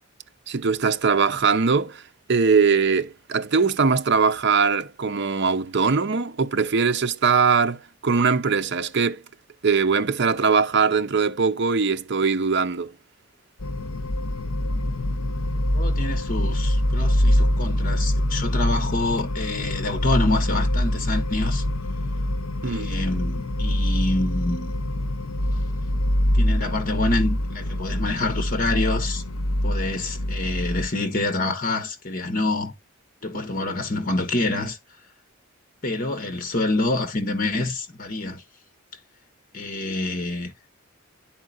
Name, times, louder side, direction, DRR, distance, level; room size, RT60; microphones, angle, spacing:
voice 1, 0.5-2.0 2.3-9.2 9.6-12.9 22.6-22.9, right 5 dB, 55° right, 0.7 m, -21 dB
sound 1, 13.6-30.9, left 1 dB, 80° left, 0.7 m, -24 dB
voice 2, 15.7-21.6 22.6-24.8 26.3-29.2 29.6-32.7 33.2-34.8 35.8-38.4 39.5-40.5, left 2 dB, 40° left, 1.4 m, -27 dB
11.5 x 4.3 x 2.4 m
head